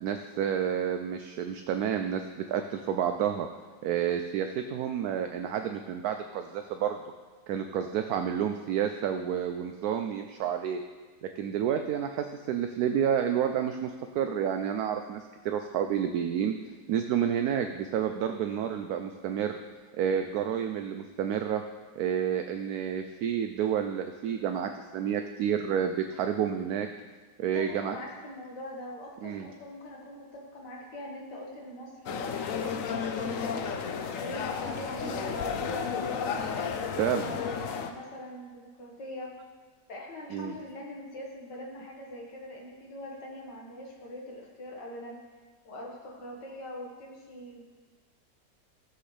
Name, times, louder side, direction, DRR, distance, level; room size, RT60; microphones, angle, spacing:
voice 1, 0.0-3.5 3.8-7.0 7.5-10.8 11.2-16.5 16.9-19.6 20.0-21.6 22.0-26.9 27.4-28.0 29.2-29.5 37.0-37.4 40.3-40.6, right 9 dB, 70° right, 6 dB, 1.0 m, -30 dB
voice 2, 27.5-36.4 36.7-39.3 39.9-45.2 45.7-47.6, left 1 dB, 85° left, -1 dB, 2.3 m, -42 dB
sound 1, 32.1-37.9, left 6 dB, 60° left, 0.9 m, -32 dB
14.5 x 7.5 x 3.3 m, 1.4 s
omnidirectional pair, 1.8 m